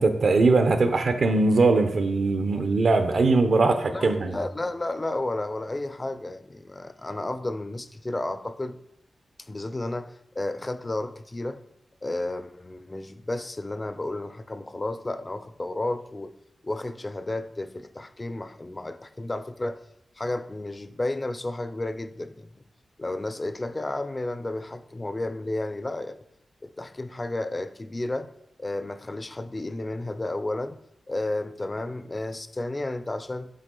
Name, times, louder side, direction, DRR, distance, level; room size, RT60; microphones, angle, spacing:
voice 1, 0.0-4.4, right 3 dB, 65° right, 8 dB, 0.7 m, -21 dB
voice 2, 3.9-8.8 9.5-11.6 12.0-16.3 16.6-19.8 20.2-22.5 23.0-26.2 26.6-28.3 28.6-30.8 31.1-33.5, left 2 dB, 30° left, 11 dB, 0.4 m, -32 dB
7.4 x 3.6 x 3.8 m, 0.78 s
cardioid pair, 75°, 0 cm